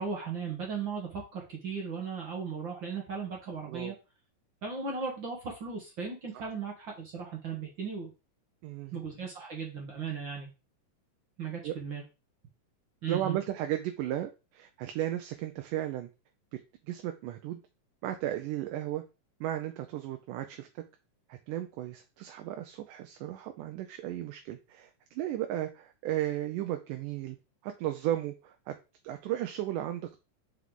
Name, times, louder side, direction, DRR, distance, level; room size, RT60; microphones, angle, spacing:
voice 1, 0.0-3.9 4.6-8.1 8.9-10.5 11.4-12.0 13.0-13.4, right 5 dB, 55° right, 0 dB, 1.4 m, -36 dB
voice 2, 8.6-9.0 11.6-11.8 13.1-16.1 16.9-17.6 18.0-19.0 19.4-20.8 21.3-27.4 27.6-28.8 29.0-30.2, right 12 dB, 80° right, 6 dB, 2.1 m, -35 dB
5.7 x 4.8 x 3.7 m, 0.29 s
omnidirectional pair, 3.9 m